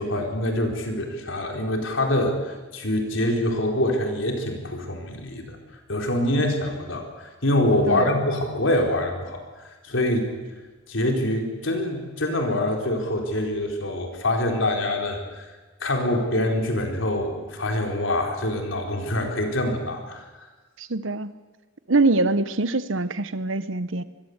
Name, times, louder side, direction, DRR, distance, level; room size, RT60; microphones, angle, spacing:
voice 1, 0.0-5.6 5.9-9.4 9.8-10.3 10.9-15.5 15.8-20.3, left 1 dB, 70° left, 3 dB, 4.4 m, -25 dB
voice 2, 7.9-8.2 20.8-21.3 21.9-24.0, right 3 dB, 75° right, 14 dB, 1.1 m, -24 dB
25.5 x 21.0 x 8.1 m, 1.3 s
head